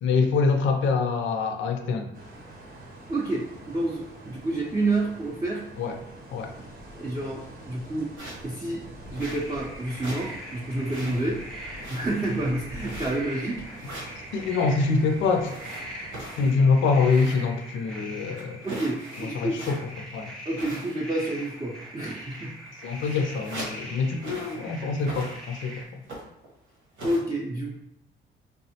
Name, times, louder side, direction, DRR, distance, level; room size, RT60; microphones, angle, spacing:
voice 1, 0.0-2.1 5.8-6.0 6.3-6.5 14.3-15.5 16.2-18.6 19.3-20.3 22.8-25.9, left 4 dB, 75° left, 5 dB, 0.4 m, -25 dB
sound 1, 2.1-16.3, right 1 dB, 50° right, 0.7 m, -45 dB
voice 2, 3.1-5.6 6.6-6.7 7.0-8.1 8.4-8.8 9.1-11.4 11.9-13.6 18.6-19.6 20.5-22.5 27.0-27.8, right 2 dB, 20° right, -4 dB, 0.5 m, -29 dB
sound 2, 8.2-8.5 9.1-9.7 10.0-10.4 10.6-11.4 11.8-12.3 12.8-13.3 13.7-14.2 15.4-17.6 17.9-18.0 18.4-20.0 20.6-21.1 21.4-21.7 22.3-22.4 22.7-23.8 24.2-24.7 25.0-25.7 26.0-26.5 27.0-27.2, right 1 dB, 85° right, 1.1 m, -40 dB
sound 3, 9.2-25.8, equal, ahead, 0.8 m, -42 dB
3.4 x 2.0 x 2.7 m, 0.79 s
cardioid pair, 90°, 20 cm